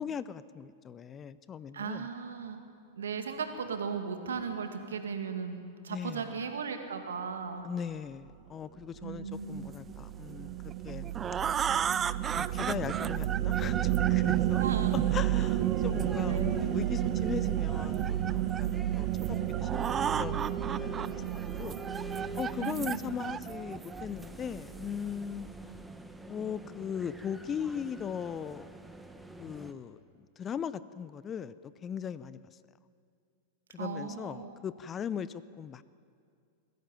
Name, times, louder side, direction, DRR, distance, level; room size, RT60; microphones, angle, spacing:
voice 1, 0.0-2.1 5.9-6.3 7.6-10.6 10.8-11.7 12.3-14.6 15.1-21.2 21.6-21.8 22.4-25.5 26.3-28.7 29.4-30.0 30.4-32.4 33.7-35.8, left 8 dB, 25° left, 16 dB, 0.6 m, -39 dB
voice 2, 1.7-2.6 3.0-7.7 9.0-9.7 14.6-15.1 16.2-16.6 22.6-23.1 33.8-34.6, right 6 dB, 75° right, 6 dB, 2.2 m, -37 dB
sound 1, 9.0-23.5, right 13 dB, 45° right, 1.2 m, -31 dB
sound 2, 10.7-16.6 17.6-18.7 19.2-19.3 19.5-21.1 21.5-24.2, right 7 dB, 25° right, 0.4 m, -35 dB
sound 3, 14.3-29.7, right 2 dB, 5° right, 1.4 m, -46 dB
21.0 x 14.5 x 9.2 m, 2.3 s
hypercardioid pair, 95°, 0 cm